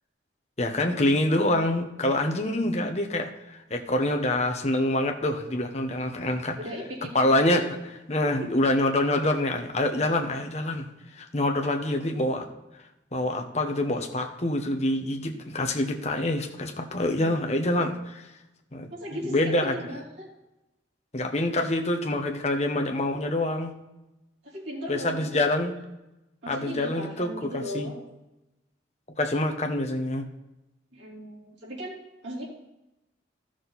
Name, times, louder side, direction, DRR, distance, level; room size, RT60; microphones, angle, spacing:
voice 1, 0.6-6.6 7.1-7.7 8.1-10.9 11.1-12.5 13.1-18.3 18.7-18.9 19.3-19.7 21.1-23.7 24.9-25.7 26.5-27.3 27.5-27.9 29.2-30.3, left 1 dB, 35° left, 4 dB, 1.1 m, -26 dB
voice 2, 6.6-7.1 7.4-7.6 8.4-8.5 18.9-20.3 24.4-25.5 26.4-27.9 30.9-31.9 32.2-32.4, equal, 85° right, -5 dB, 3.7 m, -37 dB
13.0 x 6.4 x 4.1 m, 0.95 s
head